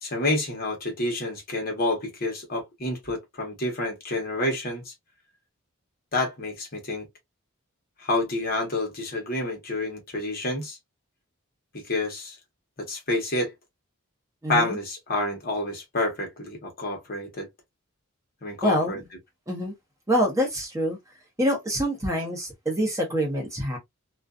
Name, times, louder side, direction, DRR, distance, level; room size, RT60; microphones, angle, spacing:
voice 1, 0.0-4.9 6.1-7.1 8.0-10.8 11.7-12.4 12.8-13.5 14.5-17.5 18.4-19.0, left 2 dB, 45° left, 1.0 m, -28 dB
voice 2, 14.4-14.8 18.6-19.0 19.5-19.7 20.1-21.0 21.4-23.8, equal, 15° right, 0.7 m, -25 dB
2.4 x 2.3 x 2.2 m
head